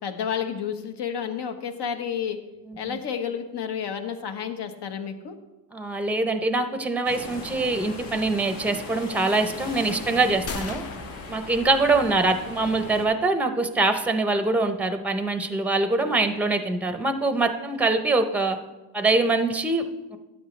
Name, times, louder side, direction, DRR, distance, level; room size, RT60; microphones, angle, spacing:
voice 1, 0.0-2.4 2.8-5.4, left 7 dB, 60° left, 7 dB, 1.2 m, -30 dB
voice 2, 2.7-3.0 5.7-10.8 11.3-18.6 18.9-20.2, right 3 dB, 5° right, 8 dB, 0.7 m, -24 dB
sound 1, 7.0-13.1, left 3 dB, 90° left, 2.1 m, -38 dB
sound 2, 10.5-12.3, left 4 dB, 30° left, 0.7 m, -38 dB
12.5 x 9.3 x 3.3 m, 1.1 s
cardioid pair, 105°, 45 cm